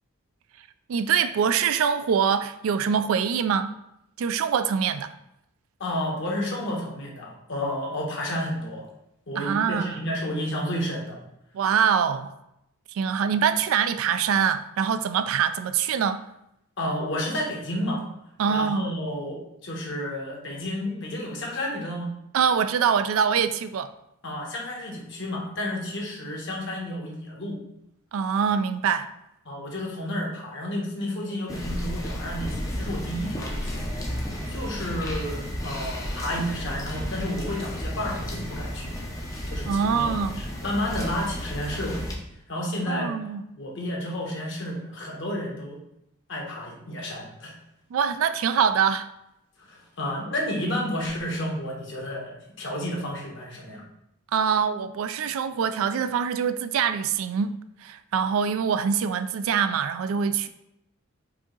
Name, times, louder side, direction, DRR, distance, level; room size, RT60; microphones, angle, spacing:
voice 1, 0.9-3.7 4.2-5.1 9.4-10.0 11.5-12.3 12.9-16.2 18.4-18.9 22.3-23.9 28.1-29.1 39.7-40.4 42.9-43.4 47.9-49.1 54.3-60.5, right 7 dB, 70° right, 0.3 m, -24 dB
voice 2, 5.8-8.9 9.3-11.2 13.2-13.3 16.8-18.1 18.5-22.1 24.2-27.6 29.5-34.2 34.5-39.0 39.5-40.1 40.4-42.1 42.5-43.2 43.6-45.8 46.3-47.6 49.6-53.8, left 1 dB, 55° left, 1.1 m, -31 dB
sound 1, 31.5-42.2, equal, 15° left, 0.5 m, -33 dB
4.9 x 2.8 x 3.8 m
head